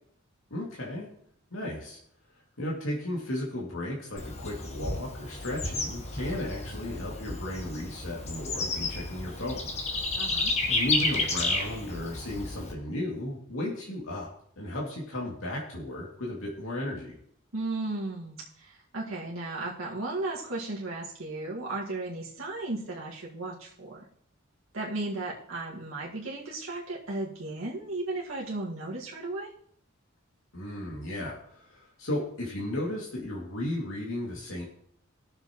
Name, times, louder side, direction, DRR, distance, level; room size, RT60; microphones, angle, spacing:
voice 1, 0.5-1.1 1.5-2.0 2.6-9.7 10.7-14.3 14.6-17.2 30.5-34.6, left 1 dB, 85° left, -4 dB, 2.3 m, -34 dB
Bird / Insect, 4.2-12.7, left 2 dB, 35° left, 1.2 m, -31 dB
voice 2, 10.2-10.5 17.5-24.1 24.7-29.5, right 2 dB, 85° right, -4 dB, 1.9 m, -35 dB
19.5 x 6.9 x 3.0 m, 0.65 s
head